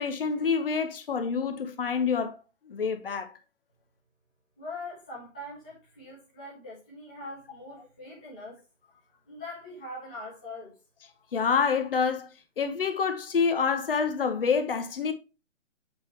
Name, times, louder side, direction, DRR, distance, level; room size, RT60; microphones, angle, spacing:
voice 1, 0.0-2.4 2.7-3.3 11.3-12.3 12.6-15.1, left 6 dB, 50° left, 1.2 m, -27 dB
voice 2, 4.6-8.6 9.3-10.8, left 2 dB, 5° left, 0.5 m, -42 dB
7.7 x 4.4 x 3.0 m
figure-of-eight pair, 150°, 37 cm